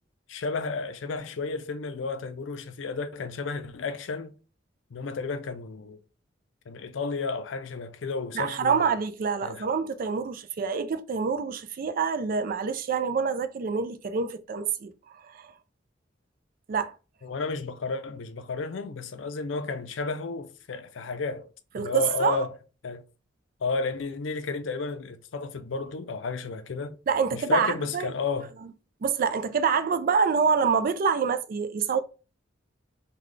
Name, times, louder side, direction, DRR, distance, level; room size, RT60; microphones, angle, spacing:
voice 1, 0.3-4.3 4.9-6.0 6.7-8.9 9.4-9.6 17.2-21.5 21.8-22.5 22.8-23.0 23.6-27.0 27.3-28.5, left 4 dB, 75° left, 0.5 m, -32 dB
voice 2, 8.3-14.9 15.2-15.5 16.7-16.9 21.7-22.4 27.1-28.1 29.0-32.0, right 6 dB, 50° right, 0.3 m, -26 dB
3.8 x 2.2 x 3.2 m
head